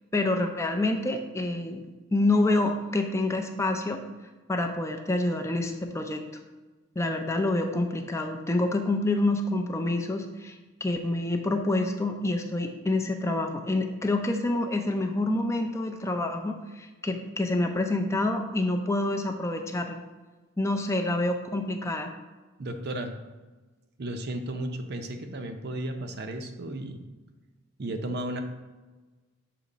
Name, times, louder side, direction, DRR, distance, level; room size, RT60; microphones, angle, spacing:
voice 1, 0.1-1.8 2.1-4.0 4.5-6.2 7.0-10.5 10.8-20.0 20.6-22.1, left 2 dB, 15° left, 4 dB, 0.4 m, -27 dB
voice 2, 22.6-23.2 24.0-27.1 27.8-28.4, right 1 dB, 55° right, 6 dB, 0.6 m, -34 dB
6.7 x 3.0 x 5.0 m, 1.2 s
head